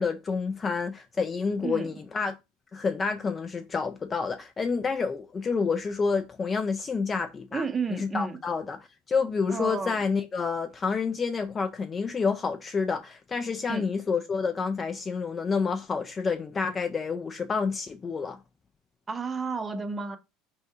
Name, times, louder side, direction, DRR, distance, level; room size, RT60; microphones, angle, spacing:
voice 1, 0.0-2.3 2.7-7.6 7.9-18.4, left 5 dB, 25° left, 0.3 m, -29 dB
voice 2, 7.5-8.4 9.5-10.0 13.6-13.8 19.1-20.2, right 4 dB, 20° right, 0.6 m, -31 dB
4.3 x 3.5 x 2.7 m
supercardioid pair, 130°, 0 cm